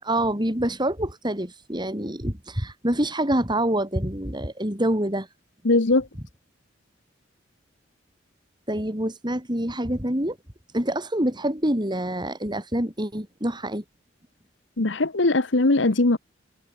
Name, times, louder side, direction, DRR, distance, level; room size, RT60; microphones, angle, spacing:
voice 1, 0.0-5.3 8.7-10.4 10.7-13.8, right 1 dB, 25° right, 6.8 m, -26 dB
voice 2, 5.6-6.1 14.8-16.2, left 2 dB, 70° left, 1.2 m, -20 dB
head